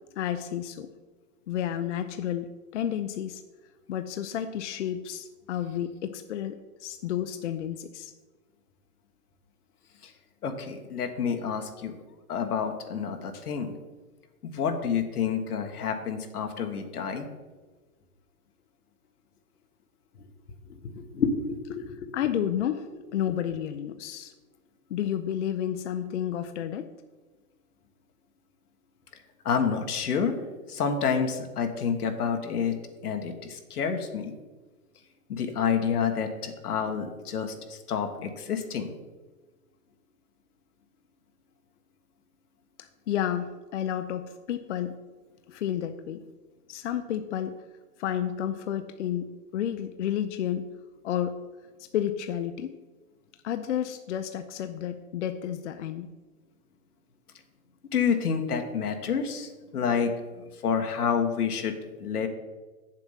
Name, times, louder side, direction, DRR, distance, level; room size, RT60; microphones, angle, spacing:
voice 1, 0.1-0.9 1.5-3.4 3.9-8.1 22.1-22.9 23.1-24.3 24.9-26.9 43.1-45.0 45.5-46.2 46.7-47.6 48.0-50.7 51.0-51.4 51.9-52.7 53.4-56.1, left 10 dB, 55° left, 9 dB, 0.6 m, -31 dB
voice 2, 10.4-12.0 12.3-13.7 14.4-17.3 20.7-22.1 29.4-30.3 30.7-32.8 33.0-34.3 35.3-38.9 57.9-62.3, left 6 dB, 90° left, 6 dB, 1.6 m, -29 dB
7.9 x 7.3 x 5.7 m, 1.3 s
hypercardioid pair, 160°, 44 cm